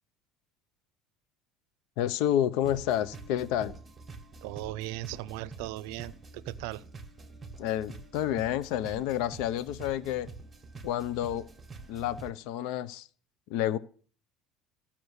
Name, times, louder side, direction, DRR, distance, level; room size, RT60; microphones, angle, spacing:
voice 1, 2.0-3.8 7.6-10.3 10.8-11.5 11.9-13.1 13.5-13.8, left 11 dB, 65° left, 0.6 m, -29 dB
sound 1, 2.6-12.3, right 3 dB, 10° right, 1.3 m, -47 dB
voice 2, 4.4-6.8, right 16 dB, 90° right, 0.5 m, -38 dB
13.5 x 5.8 x 8.0 m
cardioid pair, 175°, 0 cm